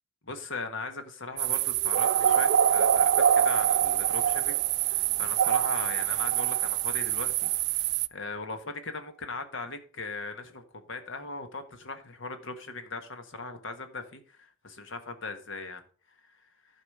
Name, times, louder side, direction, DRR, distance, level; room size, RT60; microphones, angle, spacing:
voice 1, 0.2-7.5 8.1-15.8, left 3 dB, 60° left, 1.4 m, -39 dB
sound 1, 1.4-8.1, right 9 dB, 55° right, 0.3 m, -25 dB
11.5 x 4.9 x 4.8 m
head